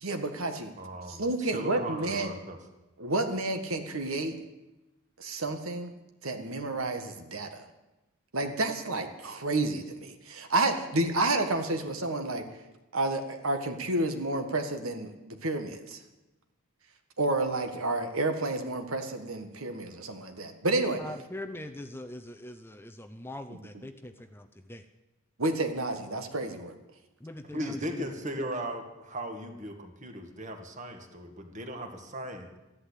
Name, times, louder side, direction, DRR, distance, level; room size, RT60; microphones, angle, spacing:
voice 1, 0.0-0.7 1.1-2.3 3.0-4.4 5.2-5.9 6.2-7.6 8.3-12.4 12.9-16.0 17.2-21.0 23.5-23.8 25.4-26.8, right 2 dB, 75° right, 6 dB, 1.7 m, -30 dB
voice 2, 0.8-2.6 27.4-32.6, right 1 dB, 35° right, 5 dB, 1.9 m, -38 dB
voice 3, 21.0-24.8 27.2-28.1 28.4-28.5, left 1 dB, 10° left, 9 dB, 0.6 m, -42 dB
13.5 x 11.5 x 8.2 m, 1.0 s
head